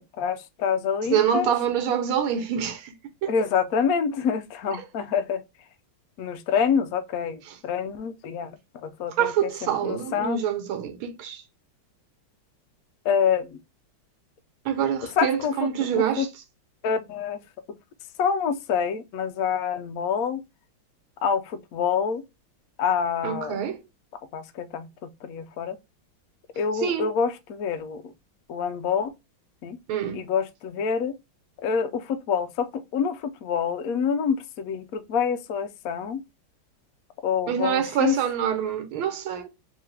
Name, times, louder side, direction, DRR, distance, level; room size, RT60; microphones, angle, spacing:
voice 1, 0.2-1.5 3.3-5.4 6.2-8.5 8.8-9.3 9.6-10.4 13.1-13.5 15.2-16.2 16.8-17.4 18.2-20.4 21.2-22.2 22.8-23.5 24.3-24.9 25.2-25.8 26.6-28.0 28.5-29.1 29.6-29.8 30.1-31.1 31.6-36.2 37.2-38.1, left 7 dB, 85° left, 0.7 m, -26 dB
voice 2, 1.0-2.9 3.2-3.3 4.7-4.9 7.4-7.6 9.2-11.4 14.7-16.3 23.2-23.8 26.7-27.1 29.9-30.2 37.5-39.5, right 9 dB, 90° right, 1.7 m, -26 dB
3.6 x 3.1 x 3.2 m
omnidirectional pair, 2.2 m